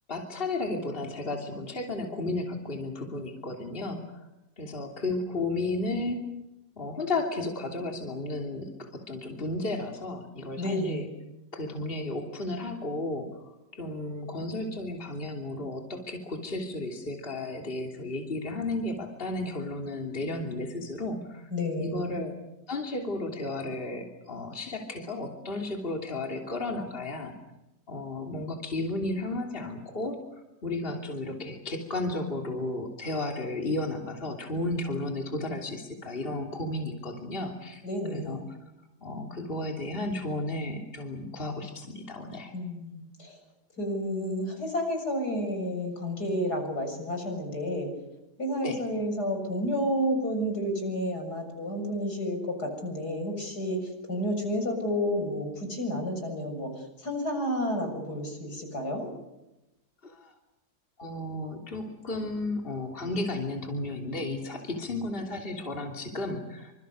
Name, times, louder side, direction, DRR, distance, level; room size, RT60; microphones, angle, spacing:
voice 1, 0.1-4.3 4.6-6.2 6.8-11.1 11.5-13.3 13.7-21.5 21.8-22.3 22.7-27.3 27.9-30.2 30.6-37.8 38.1-38.4 39.0-42.5 48.6-48.8 60.0-60.3 61.0-66.7, left 2 dB, 35° left, 2 dB, 3.2 m, -33 dB
voice 2, 10.6-11.1 21.5-22.1 37.8-38.4 42.5-43.4 43.8-47.9 48.4-59.1, equal, 75° left, 4 dB, 7.6 m, -31 dB
27.0 x 26.5 x 6.7 m, 0.94 s
omnidirectional pair, 1.7 m